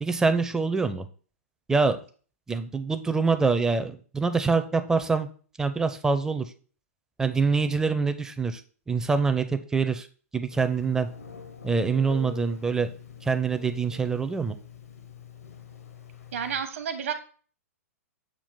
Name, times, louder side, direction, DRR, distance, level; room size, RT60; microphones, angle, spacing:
voice 1, 0.0-1.1 1.7-2.0 2.5-5.3 5.6-6.5 7.2-8.6 8.9-10.1 10.3-11.1 11.6-12.9 13.2-14.6, right 4 dB, 5° right, 9 dB, 0.5 m, -25 dB
Telephone, 10.5-16.6, left 6 dB, 75° left, 1.0 m, -45 dB
voice 2, 16.3-17.1, right 7 dB, 60° right, 9 dB, 1.0 m, -31 dB
7.3 x 2.5 x 5.2 m, 0.41 s
figure-of-eight pair, 110°, 8 cm